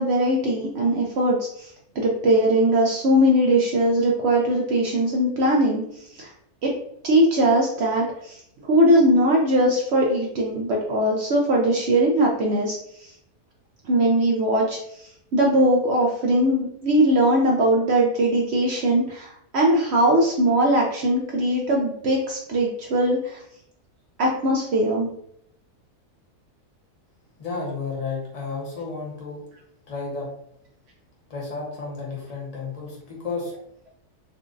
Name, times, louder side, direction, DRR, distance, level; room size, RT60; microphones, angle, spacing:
voice 1, 0.0-5.8 6.1-6.3 6.6-6.7 7.0-8.4 8.6-13.1 13.8-23.4 24.2-25.1, right 1 dB, 80° right, -1 dB, 0.6 m, -20 dB
voice 2, 27.4-29.4 29.9-30.3 31.3-33.5, left 4 dB, 30° left, -3 dB, 0.8 m, -32 dB
3.8 x 2.4 x 2.5 m, 0.73 s
omnidirectional pair, 1.7 m